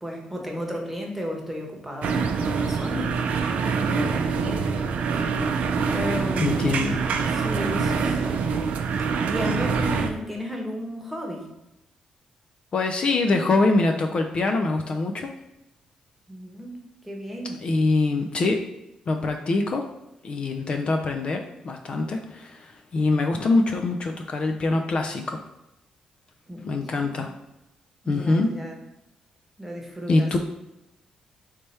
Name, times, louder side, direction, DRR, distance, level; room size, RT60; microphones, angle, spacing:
voice 1, 0.0-3.2 3.7-4.7 5.1-5.2 5.9-6.5 7.3-8.5 9.3-11.5 16.3-16.7 17.0-17.6 26.5-27.3 28.0-28.8 29.6-30.3, equal, 5° right, 0 dB, 1.0 m, -34 dB
sound 1, 2.0-10.1, right 5 dB, 80° right, 0.4 m, -25 dB
voice 2, 6.4-7.0 12.7-15.3 17.6-18.6 19.1-19.8 20.2-25.4 26.7-27.3 28.1-28.5 30.1-30.4, left 3 dB, 50° left, 4 dB, 0.4 m, -24 dB
3.3 x 3.2 x 4.2 m, 0.91 s
cardioid pair, 85°, 2 cm